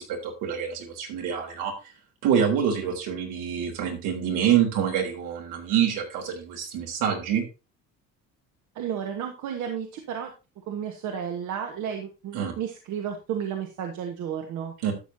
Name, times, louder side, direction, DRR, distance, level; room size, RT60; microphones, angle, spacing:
voice 1, 0.0-1.7 2.2-7.4 12.3-12.5 14.8-14.9, right 8 dB, 80° right, 2 dB, 3.6 m, -26 dB
voice 2, 8.7-10.3 10.7-14.7, right 8 dB, 65° right, 4 dB, 1.5 m, -32 dB
12.5 x 7.7 x 2.8 m, 0.30 s
cardioid pair, 145°, 31 cm